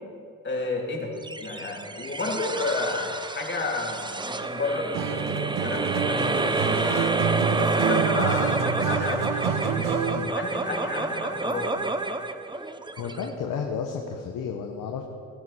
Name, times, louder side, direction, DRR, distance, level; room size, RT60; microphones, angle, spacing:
voice 1, 0.4-1.1 1.4-6.8 7.5-11.7, left 3 dB, 35° left, -1 dB, 3.0 m, -31 dB
sound 1, 1.2-13.9, right 2 dB, 15° right, 0.8 m, -29 dB
Acoustic guitar, 4.9-10.3, right 8 dB, 75° right, 0.9 m, -28 dB
Trumpet, 5.2-11.1, left 7 dB, 90° left, 1.3 m, -45 dB
voice 2, 13.0-15.0, left 6 dB, 75° left, 3 dB, 1.2 m, -32 dB
19.5 x 11.0 x 4.3 m, 2.4 s
supercardioid pair, 75°, 32 cm